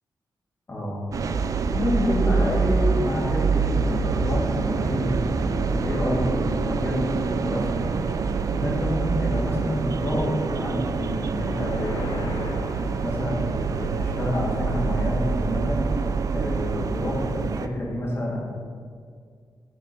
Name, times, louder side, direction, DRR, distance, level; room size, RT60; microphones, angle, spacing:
voice 1, 0.7-1.0 1.7-7.9 8.5-12.4 12.7-15.9 16.3-18.4, left 1 dB, 35° left, -3 dB, 1.9 m, -28 dB
sound 1, 1.1-17.7, right 4 dB, 50° right, 0.4 m, -26 dB
sound 2, 11.3-13.7, left 2 dB, 75° left, 1.0 m, -37 dB
6.7 x 4.3 x 6.1 m, 2.1 s
wide cardioid pair, 110°, 8 cm